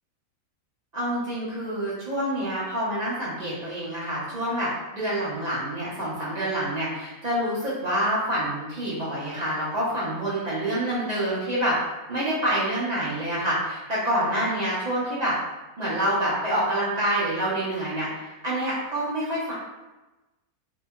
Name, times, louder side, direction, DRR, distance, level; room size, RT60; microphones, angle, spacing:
voice 1, 0.9-11.8 12.1-15.3 15.8-18.1 18.4-19.5, right 1 dB, 60° right, -8 dB, 0.4 m, -27 dB
2.8 x 2.7 x 2.3 m, 1.1 s
omnidirectional pair, 1.6 m